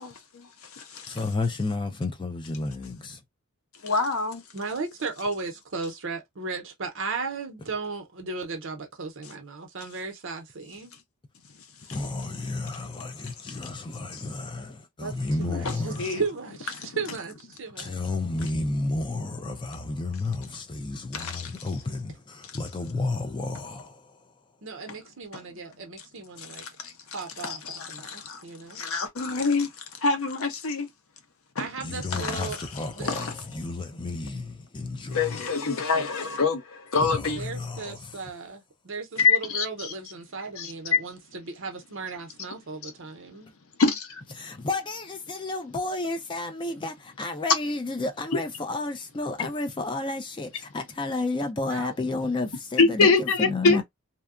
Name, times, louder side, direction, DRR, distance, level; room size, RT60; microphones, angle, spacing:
voice 1, 0.0-1.2 3.8-4.4 14.1-14.2 15.5-16.2 16.8-17.0 21.1-21.5 24.9-25.0 25.3-25.4 26.4-26.9 27.4-28.4 28.7-30.9 31.6-31.7 32.1-32.7 33.1-33.3 35.1-37.4 39.2-39.9 40.6-40.7 42.8-42.9 43.8-44.2 49.4-49.5 52.8-53.8, left 4 dB, 65° left, 0.6 m, -26 dB
voice 2, 1.1-3.2 11.9-16.1 17.8-24.2 31.8-35.4 37.0-38.2 44.3-53.8, left 2 dB, 20° left, 0.3 m, -31 dB
voice 3, 4.5-10.9 15.0-15.1 15.4-18.0 24.6-26.6 27.1-28.8 31.6-32.6 32.9-33.1 37.4-43.5 51.7-51.9, right 4 dB, 55° right, 0.7 m, -35 dB
2.7 x 2.2 x 2.4 m
head